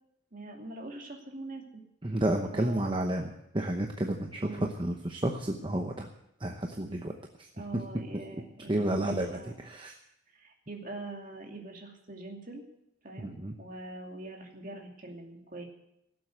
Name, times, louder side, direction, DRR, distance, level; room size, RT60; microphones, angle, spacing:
voice 1, 0.3-1.8 2.5-3.0 4.4-4.8 7.5-9.5 10.3-12.6 13.0-15.7, right 2 dB, 40° right, 1 dB, 2.5 m, -43 dB
voice 2, 2.0-6.1 6.4-7.1 8.7-9.4 9.6-10.0 13.2-13.5, right 1 dB, 25° right, 3 dB, 0.9 m, -31 dB
17.0 x 7.8 x 8.0 m, 0.79 s
head